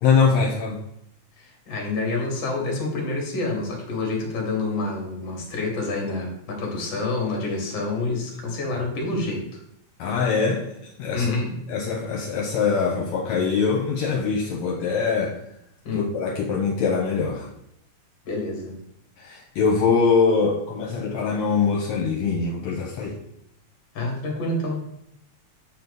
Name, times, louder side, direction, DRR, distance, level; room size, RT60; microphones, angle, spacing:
voice 1, 0.0-0.8 10.0-10.7 11.0-11.4 11.7-15.4 15.9-17.5 19.2-23.2, left 5 dB, 75° left, -2 dB, 2.1 m, -23 dB
voice 2, 1.4-9.5 11.1-11.5 15.8-16.1 18.2-18.8 23.9-24.9, left 2 dB, 45° left, -1 dB, 2.2 m, -27 dB
7.2 x 4.3 x 4.0 m, 0.77 s
omnidirectional pair, 3.3 m